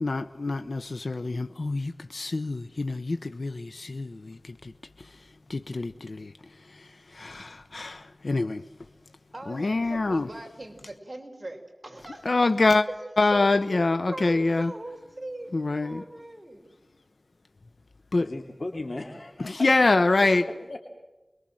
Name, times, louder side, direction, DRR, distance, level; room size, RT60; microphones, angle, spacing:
voice 1, 0.0-4.7 5.0-8.6 9.5-10.3 12.2-12.9 13.2-14.7 15.5-16.0 18.1-18.3 19.4-20.5, left 3 dB, 75° left, 0.8 m, -26 dB
voice 2, 9.3-12.5 13.0-13.8 14.1-16.6, right 1 dB, 35° right, 5.6 m, -40 dB
voice 3, 18.2-19.7 20.2-20.3 20.7-20.8, left 2 dB, 60° left, 2.8 m, -37 dB
29.5 x 22.5 x 7.7 m
wide cardioid pair, 45°, 0 cm